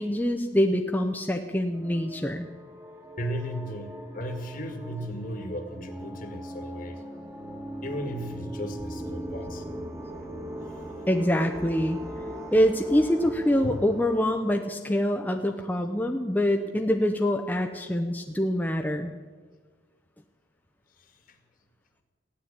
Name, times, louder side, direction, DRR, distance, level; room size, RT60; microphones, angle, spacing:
voice 1, 0.0-2.5 11.1-12.0 12.5-19.1, equal, 10° left, 3 dB, 0.7 m, -25 dB
sound 1, 1.7-14.3, right 1 dB, 15° right, 1.6 m, -39 dB
voice 2, 3.2-7.0 7.8-9.6 10.6-10.8 13.6-13.8 21.0-21.4, equal, 50° left, 6 dB, 1.9 m, -36 dB
15.5 x 10.0 x 8.7 m, 1.5 s
head